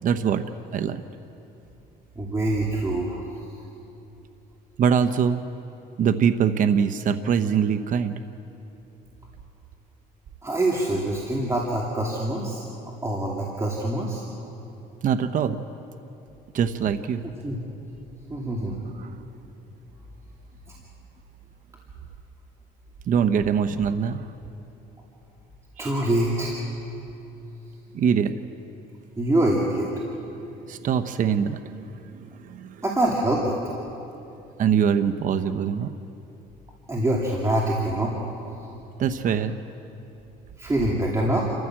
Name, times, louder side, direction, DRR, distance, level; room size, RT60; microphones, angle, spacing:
voice 1, 0.0-0.4 0.7-1.0 4.8-5.4 6.0-8.2 15.0-15.6 16.5-17.2 19.0-19.1 23.1-24.3 25.8-25.9 27.9-28.4 30.1-30.4 30.7-32.8 34.6-35.9 39.0-39.6, right 7 dB, 50° right, 9 dB, 0.9 m, -23 dB
voice 2, 2.2-3.2 10.4-12.6 13.0-14.2 17.4-17.6 18.3-18.8 25.8-26.5 29.2-29.9 32.8-33.6 36.9-38.1 40.6-41.4, right 1 dB, 15° right, -3 dB, 2.7 m, -24 dB
28.5 x 14.5 x 7.6 m, 2.9 s
cardioid pair, 110°, 17 cm